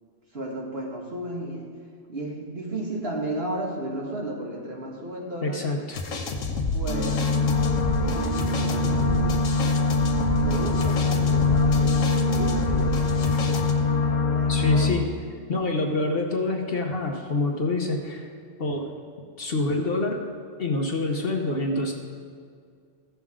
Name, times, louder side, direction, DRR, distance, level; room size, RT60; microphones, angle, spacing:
voice 1, 0.3-1.7 2.1-5.7 6.7-7.2 8.0-9.4 10.4-13.1 14.3-15.0, right 1 dB, 50° right, -1 dB, 1.6 m, -34 dB
voice 2, 5.4-6.0 14.5-15.1 15.5-18.3 18.6-18.9 19.4-20.2 20.6-21.9, left 2 dB, 50° left, 2 dB, 1.0 m, -26 dB
sound 1, 5.9-13.7, left 2 dB, 90° left, 1.3 m, -29 dB
sound 2, 6.9-14.9, left 3 dB, 75° left, 1.3 m, -23 dB
15.5 x 6.9 x 3.6 m, 2.2 s
omnidirectional pair, 1.3 m